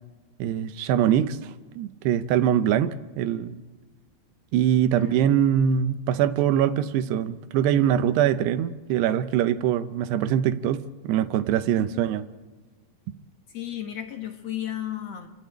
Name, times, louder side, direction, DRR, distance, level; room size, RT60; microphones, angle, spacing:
voice 1, 0.4-3.6 4.5-12.2, right 10 dB, 80° right, 11 dB, 2.9 m, -23 dB
voice 2, 13.5-15.3, left 11 dB, 70° left, 5 dB, 1.6 m, -34 dB
30.0 x 12.0 x 8.9 m, 1.3 s
omnidirectional pair, 4.8 m